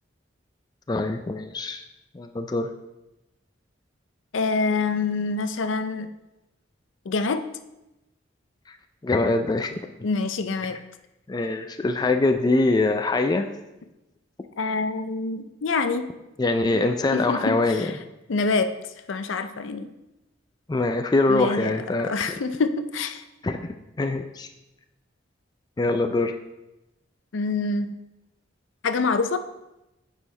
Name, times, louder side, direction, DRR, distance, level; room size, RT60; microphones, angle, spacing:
voice 1, 0.9-1.8 2.1-2.7 9.0-9.7 11.3-13.5 16.4-18.0 20.7-22.4 23.4-24.5 25.8-26.4, left 2 dB, 20° left, 6 dB, 0.3 m, -23 dB
voice 2, 4.3-6.1 7.1-7.4 10.0-10.8 14.6-16.1 17.1-17.9 18.3-18.7 19.1-19.9 21.3-21.7 22.0-23.2 27.3-28.0 28.8-29.4, left 3 dB, 80° left, 10 dB, 0.5 m, -26 dB
8.9 x 5.5 x 3.2 m, 0.97 s
head